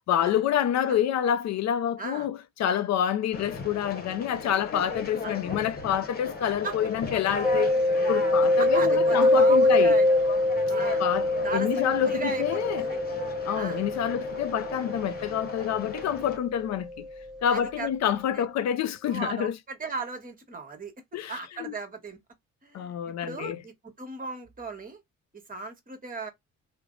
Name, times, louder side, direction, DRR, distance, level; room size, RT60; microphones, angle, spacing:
voice 1, 0.0-7.7 8.1-10.0 11.0-12.8 13.5-17.1 17.4-19.6 21.1-21.7 22.7-23.6, left 10 dB, 60° left, 0.4 m, -27 dB
voice 2, 2.0-2.3 5.2-5.4 6.6-6.7 8.6-10.1 10.7-11.0 11.4-13.0 13.5-13.8 17.5-17.9 18.3-18.4 19.1-20.9 21.3-22.2 22.6-25.0 25.3-26.3, right 4 dB, 30° right, 1.2 m, -36 dB
Conversation, 3.3-16.4, left 3 dB, 30° left, 1.0 m, -37 dB
Mallet percussion, 7.4-17.0, left 2 dB, ahead, 0.8 m, -24 dB
3.1 x 2.0 x 3.7 m
cardioid pair, 90°, 30 cm